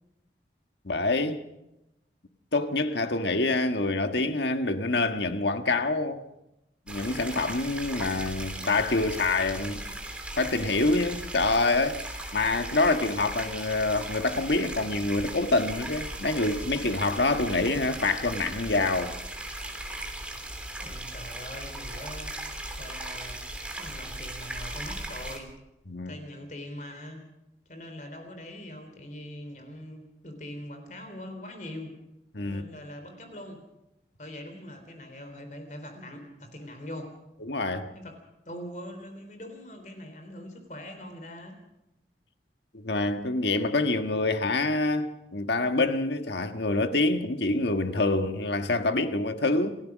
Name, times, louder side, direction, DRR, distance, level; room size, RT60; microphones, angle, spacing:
voice 1, 0.8-1.4 2.5-6.3 6.9-9.8 10.4-19.1 25.9-26.1 32.3-32.6 37.5-37.9 42.7-49.8, left 2 dB, 80° left, 1.5 m, -26 dB
sound 1, 6.9-25.4, right 1 dB, 5° right, 3.3 m, -38 dB
voice 2, 20.8-23.5 23.8-25.6 26.1-27.2 27.7-32.0 32.4-33.6 34.2-37.1 37.9-38.2 38.5-41.6, left 1 dB, 45° left, 3.8 m, -42 dB
28.5 x 15.5 x 6.3 m
head